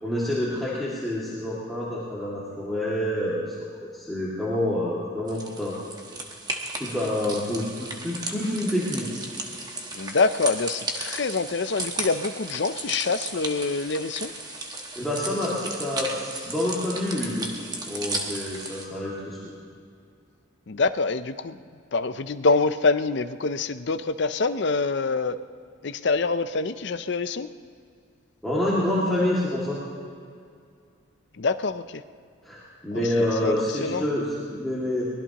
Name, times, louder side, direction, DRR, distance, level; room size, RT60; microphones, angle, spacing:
voice 1, 0.0-5.8 6.7-9.3 15.0-19.5 28.4-29.8 32.4-35.1, left 1 dB, ahead, -9 dB, 2.2 m, -27 dB
sound 1, 5.3-18.8, right 2 dB, 20° right, 1.3 m, -35 dB
voice 2, 9.9-14.3 20.7-21.6 21.9-25.4 25.8-27.5 31.4-32.0 32.9-33.5 33.8-34.0, left 4 dB, 55° left, 12 dB, 0.5 m, -25 dB
23.5 x 20.0 x 3.0 m, 2.3 s
head